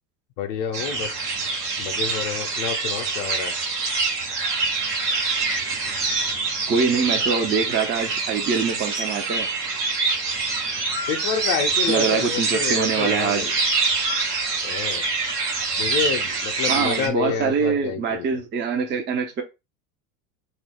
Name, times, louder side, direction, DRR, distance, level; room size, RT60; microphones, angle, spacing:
voice 1, 0.4-1.3 1.8-3.5 11.1-13.6 14.6-15.0 15.8-18.4, left 7 dB, 55° left, 0.6 m, -29 dB
sound 1, 0.7-17.1, right 4 dB, 90° right, 1.0 m, -25 dB
voice 2, 6.7-9.5 11.9-13.5 16.7-19.4, right 6 dB, 25° right, 0.6 m, -24 dB
2.4 x 2.1 x 3.4 m
hypercardioid pair, 85°, 46 cm